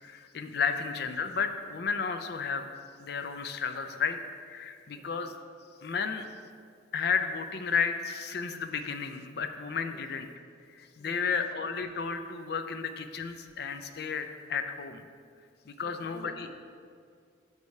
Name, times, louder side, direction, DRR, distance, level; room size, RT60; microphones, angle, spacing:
voice 1, 0.0-2.7 3.0-5.3 5.8-6.3 6.9-10.3 10.7-15.0 15.6-16.5, left 6 dB, 55° left, 8 dB, 0.4 m, -33 dB
voice 2, 11.0-11.3 15.8-16.6, equal, 25° left, 0 dB, 0.8 m, -51 dB
6.7 x 4.8 x 5.3 m, 2.2 s
head